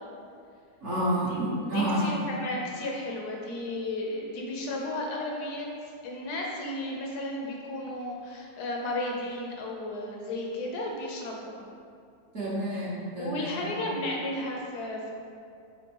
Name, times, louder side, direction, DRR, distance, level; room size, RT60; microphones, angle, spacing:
voice 1, 0.8-2.1 12.3-13.9, right 1 dB, 50° right, -8 dB, 1.0 m, -29 dB
voice 2, 1.7-5.7 6.0-11.6 13.2-15.1, left 1 dB, 70° left, -1 dB, 1.1 m, -34 dB
4.3 x 3.9 x 3.0 m, 2.3 s
omnidirectional pair, 1.8 m